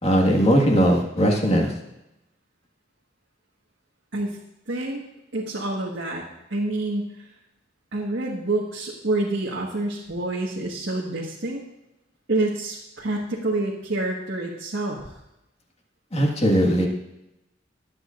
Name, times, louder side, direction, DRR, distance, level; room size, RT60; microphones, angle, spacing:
voice 1, 0.0-1.7 16.1-16.9, equal, 30° left, 0 dB, 1.7 m, -19 dB
voice 2, 4.7-5.0 5.3-6.2 6.5-7.1 7.9-11.6 12.3-15.0, right 2 dB, 75° right, -3 dB, 1.5 m, -27 dB
21.0 x 8.7 x 2.5 m, 0.91 s
head